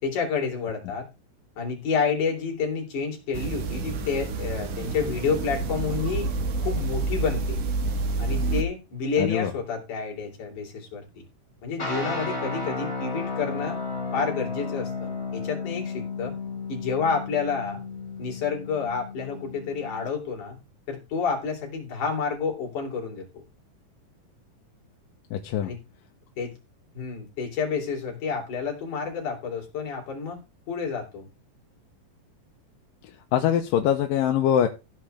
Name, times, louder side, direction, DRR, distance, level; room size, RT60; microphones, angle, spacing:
voice 1, 0.0-1.1 1.6-7.6 8.2-11.0 11.6-13.8 14.1-16.3 16.7-17.8 18.2-20.6 20.9-23.4 25.6-25.8 26.4-26.5 26.9-30.4 30.7-31.3, left 5 dB, 65° left, 0 dB, 4.6 m, -29 dB
sound 1, 3.3-8.6, right 3 dB, 70° right, 2.9 m, -28 dB
voice 2, 9.2-9.5 25.3-25.7 33.3-34.7, left 10 dB, 85° left, 4 dB, 2.6 m, -23 dB
sound 2, 11.8-20.0, left 4 dB, 25° left, 3.9 m, -33 dB
15.5 x 7.7 x 3.3 m, 0.28 s
omnidirectional pair, 3.9 m